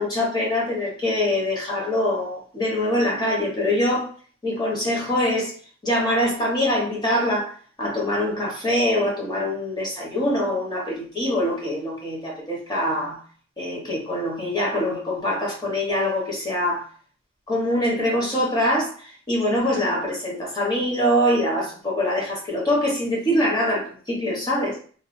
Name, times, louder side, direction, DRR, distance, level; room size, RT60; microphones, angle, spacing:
voice 1, 0.0-4.1 4.4-5.5 5.8-13.2 13.6-16.9 17.5-24.8, left 1 dB, 20° left, -3 dB, 0.9 m, -24 dB
3.1 x 2.3 x 2.5 m, 0.44 s
head